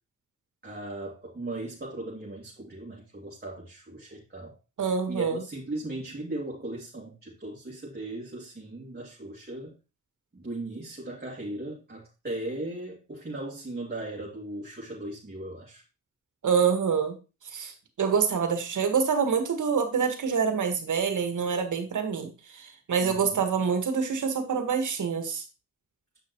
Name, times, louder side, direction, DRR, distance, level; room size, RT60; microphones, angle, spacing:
voice 1, 0.6-4.5 5.1-9.7 10.3-15.8 23.0-23.4, right 2 dB, 30° right, -4 dB, 2.6 m, -37 dB
voice 2, 4.8-5.4 16.4-17.1 17.5-25.4, right 6 dB, 70° right, 6 dB, 1.7 m, -26 dB
8.3 x 5.9 x 3.1 m, 0.30 s
cardioid pair, 55°, 31 cm